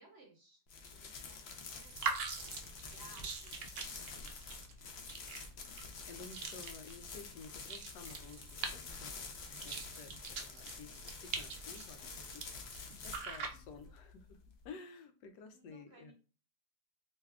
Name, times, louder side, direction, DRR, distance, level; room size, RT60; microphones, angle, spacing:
voice 1, 0.0-1.4 1.7-1.9 2.4-2.6 2.9-4.3 13.5-13.9 15.5-16.1, right 3 dB, 45° right, -1 dB, 1.0 m, -61 dB
sound 1, 0.7-14.7, left 4 dB, 65° left, 0.6 m, -49 dB
sound 2, 1.7-13.9, right 5 dB, 85° right, 0.5 m, -44 dB
voice 2, 5.4-11.0 11.2-14.4 14.6-16.1, left 5 dB, 85° left, 7 dB, 1.2 m, -53 dB
3.1 x 2.3 x 3.4 m, 0.37 s
omnidirectional pair, 1.8 m